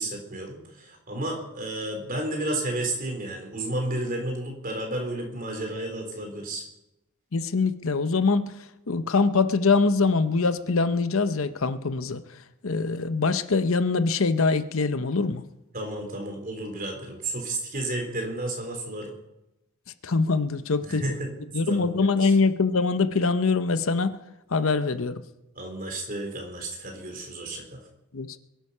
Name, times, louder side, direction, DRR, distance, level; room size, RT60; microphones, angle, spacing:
voice 1, 0.0-6.6 15.7-19.1 20.8-21.3 21.7-22.3 25.5-27.8, right 1 dB, 40° right, 2 dB, 3.9 m, -32 dB
voice 2, 7.3-8.5 8.9-12.2 12.6-15.4 20.0-21.0 21.5-24.1 24.5-25.2 28.1-28.4, left 4 dB, 65° left, 12 dB, 0.8 m, -23 dB
22.5 x 11.5 x 5.6 m, 0.92 s
head